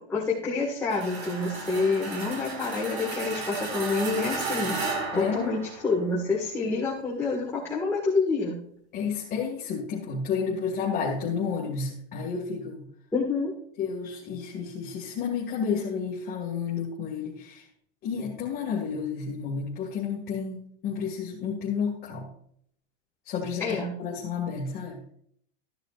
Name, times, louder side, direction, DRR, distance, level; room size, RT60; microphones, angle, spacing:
voice 1, 0.1-4.8 5.1-8.5 13.1-13.5 23.6-23.9, left 3 dB, 5° left, -6 dB, 1.9 m, -27 dB
sound 1, 0.9-6.1, right 3 dB, 45° right, 2.1 m, -34 dB
voice 2, 5.1-5.6 8.9-12.8 13.8-17.6 18.0-22.3 23.3-25.0, left 6 dB, 25° left, -4 dB, 2.3 m, -31 dB
14.5 x 10.5 x 2.5 m, 0.66 s
supercardioid pair, 160°, 35 cm